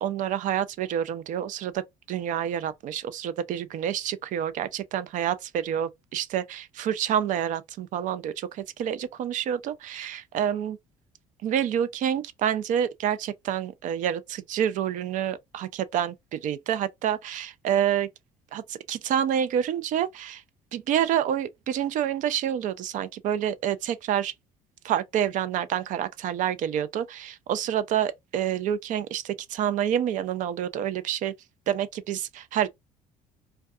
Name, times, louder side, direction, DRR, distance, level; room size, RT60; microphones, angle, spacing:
voice 1, 0.0-10.8 11.4-18.1 18.5-20.4 20.7-24.3 24.8-31.3 31.7-32.7, right 10 dB, 60° right, 0.4 m, -28 dB
2.6 x 2.2 x 2.3 m
supercardioid pair, 90°, 15 cm